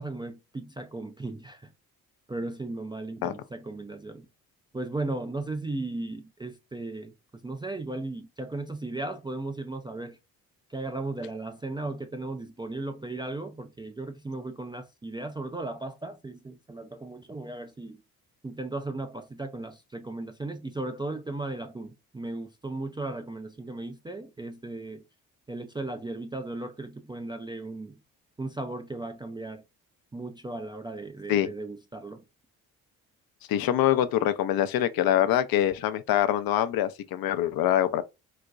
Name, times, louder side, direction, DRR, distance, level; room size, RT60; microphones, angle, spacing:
voice 1, 0.0-1.7 2.3-4.3 4.7-7.1 7.4-10.2 10.7-18.0 18.4-25.0 25.5-28.0 28.4-29.6 30.1-32.2, right 2 dB, 10° right, 0.4 m, -36 dB
voice 2, 33.5-38.0, left 11 dB, 60° left, 0.5 m, -24 dB
4.1 x 2.2 x 2.4 m
hypercardioid pair, 50°, 41 cm